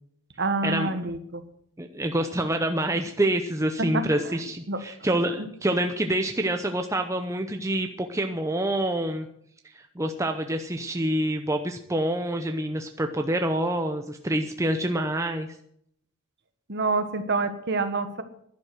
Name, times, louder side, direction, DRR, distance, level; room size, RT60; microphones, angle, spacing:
voice 1, 0.4-1.4 3.8-4.4 4.7-4.8 5.4-5.5 16.7-18.2, right 3 dB, 50° right, 9 dB, 1.5 m, -27 dB
voice 2, 1.8-9.3 9.7-15.5, right 1 dB, 15° right, 6 dB, 0.7 m, -27 dB
11.5 x 11.0 x 7.8 m, 0.69 s
head